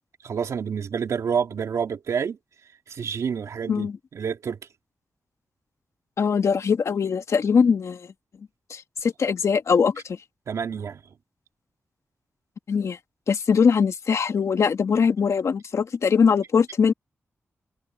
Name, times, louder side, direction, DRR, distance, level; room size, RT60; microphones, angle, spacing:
voice 1, 0.2-2.4 2.9-3.9 4.1-4.6 10.5-11.0, right 7 dB, 85° right, 2.5 m, -28 dB
voice 2, 6.2-8.1 8.7-10.2 12.7-13.0 13.3-16.9, left 6 dB, 70° left, 1.5 m, -21 dB
cardioid pair, 70°, 5 cm